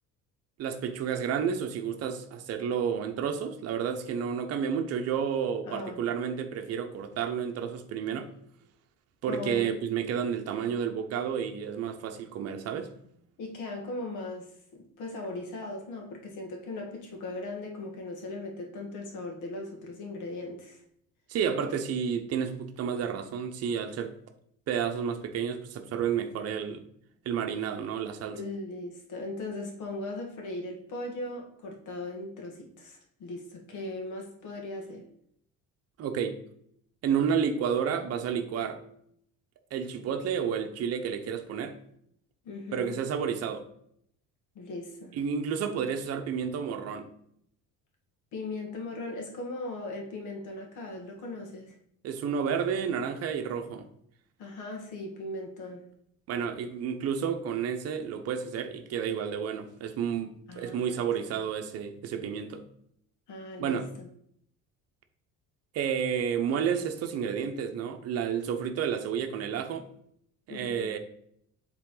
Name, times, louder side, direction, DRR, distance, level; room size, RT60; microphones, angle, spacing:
voice 1, 0.6-8.3 9.2-12.9 21.3-24.1 24.7-26.8 27.2-28.4 36.0-36.4 37.0-38.8 39.7-41.8 42.7-43.6 45.1-47.1 52.0-53.9 56.3-62.6 63.6-63.9 65.7-69.9 70.5-71.0, right 7 dB, 50° right, 0.8 m, -31 dB
voice 2, 5.7-6.1 9.3-9.7 13.4-20.8 28.3-35.1 42.4-43.0 44.5-45.2 48.3-51.7 54.4-55.9 60.5-61.4 63.3-64.1 70.5-71.0, left 2 dB, 70° left, 1.7 m, -38 dB
7.5 x 3.8 x 3.8 m
cardioid pair, 160°, 31 cm